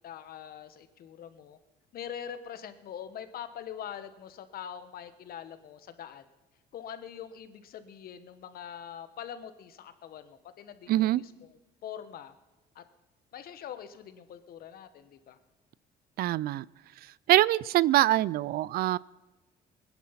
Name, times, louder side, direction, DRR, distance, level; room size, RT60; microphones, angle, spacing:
voice 1, 0.0-1.6 1.9-6.3 6.7-12.3 12.7-12.8 13.3-15.4, left 9 dB, 60° left, 11 dB, 1.3 m, -43 dB
voice 2, 10.9-11.2 16.2-16.7 17.0-19.0, right 15 dB, 65° right, 22 dB, 0.4 m, -24 dB
20.0 x 10.5 x 5.8 m, 1.1 s
cardioid pair, 110°, 17 cm